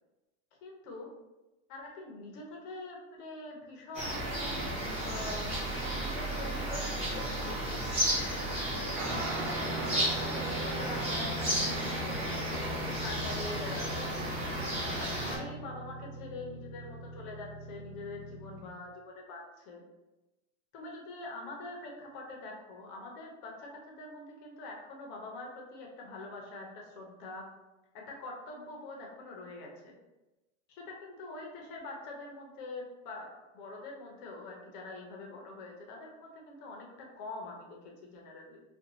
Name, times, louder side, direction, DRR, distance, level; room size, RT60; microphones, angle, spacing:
voice 1, 0.6-1.1 1.7-7.9 9.1-12.2 13.0-14.3 14.6-19.8 20.7-27.4 27.9-29.9 30.8-33.3 33.5-38.6, left 2 dB, 35° left, -1 dB, 0.5 m, -44 dB
sound 1, 3.9-15.4, right 1 dB, 15° right, 0.6 m, -33 dB
Guitar, 9.0-18.7, right 1 dB, 75° right, 0.7 m, -40 dB
2.5 x 2.2 x 2.8 m, 1.0 s
supercardioid pair, 155°, 36 cm